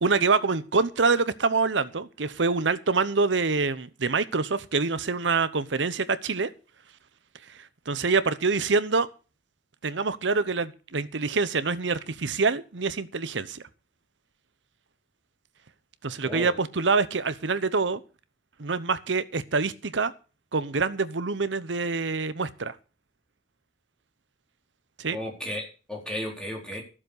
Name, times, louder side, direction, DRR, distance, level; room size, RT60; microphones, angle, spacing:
voice 1, 0.0-6.5 7.9-9.1 9.8-13.6 16.0-18.0 18.6-20.1 20.5-22.7 25.0-25.2, right 4 dB, 80° right, 14 dB, 0.9 m, -25 dB
voice 2, 25.1-26.8, equal, 5° left, -1 dB, 4.2 m, -34 dB
13.5 x 7.5 x 6.5 m, 0.35 s
head